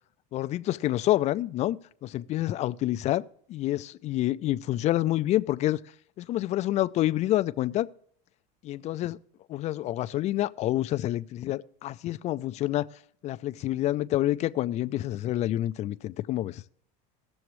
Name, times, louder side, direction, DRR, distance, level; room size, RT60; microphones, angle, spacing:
voice 1, 0.3-3.2 3.5-5.8 6.2-7.9 8.6-9.2 9.5-13.0 13.2-16.6, left 14 dB, 35° left, 0.4 m, -28 dB
19.0 x 7.0 x 3.2 m
supercardioid pair, 140°, 21 cm